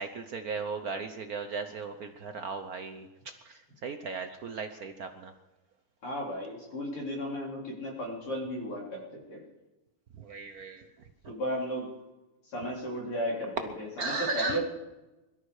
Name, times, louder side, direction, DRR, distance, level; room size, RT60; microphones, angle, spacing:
voice 1, 0.0-5.3 10.2-11.1 14.0-14.6, right 4 dB, 60° right, 7 dB, 1.0 m, -36 dB
voice 2, 6.0-9.4 11.3-11.9 12.4-14.6, equal, 80° left, -2 dB, 4.7 m, -34 dB
22.0 x 13.0 x 4.8 m, 1.1 s
omnidirectional pair, 2.4 m